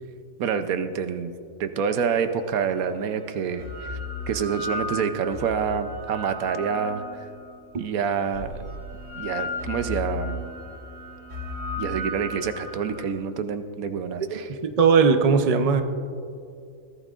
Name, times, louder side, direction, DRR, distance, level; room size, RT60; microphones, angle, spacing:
voice 1, 0.4-1.3 1.6-4.0 4.3-7.0 7.8-8.5 9.1-10.5 11.8-14.5, right 6 dB, 80° right, 9 dB, 1.2 m, -27 dB
sound 1, 2.3-2.4 3.3-7.6 8.3-13.0, left 2 dB, 60° right, 2.7 m, -34 dB
voice 2, 14.3-15.8, right 5 dB, 35° right, 7 dB, 0.6 m, -19 dB
22.5 x 15.5 x 2.5 m, 2.4 s
omnidirectional pair, 1.5 m